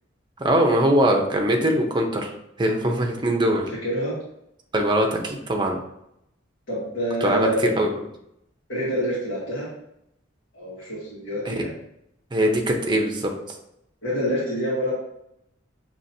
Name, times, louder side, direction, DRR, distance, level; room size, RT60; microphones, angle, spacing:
voice 1, 0.4-2.3 2.6-3.7 4.7-5.8 7.2-7.5 7.8-7.9 11.5-11.6 12.3-13.3, right 1 dB, 25° right, 2 dB, 0.6 m, -21 dB
voice 2, 3.8-4.1 6.7-7.7 8.7-9.7 10.5-11.7 14.0-14.9, equal, 85° left, -8 dB, 1.6 m, -26 dB
5.6 x 3.0 x 2.7 m, 0.79 s
head